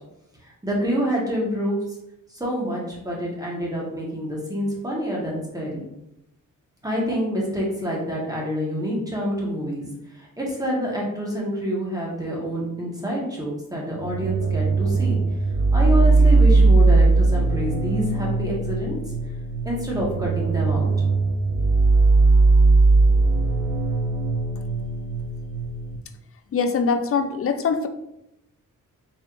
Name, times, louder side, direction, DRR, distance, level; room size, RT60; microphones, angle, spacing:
voice 1, 0.6-1.8 2.3-5.8 6.8-9.9 10.2-15.2 15.7-19.0 19.6-20.9, equal, 10° right, -4 dB, 1.3 m, -27 dB
sound 1, 14.0-26.0, right 3 dB, 90° right, 0.6 m, -19 dB
voice 2, 26.5-27.9, left 5 dB, 45° left, 8 dB, 0.4 m, -22 dB
4.5 x 3.4 x 2.5 m, 0.85 s
cardioid pair, 110°, 34 cm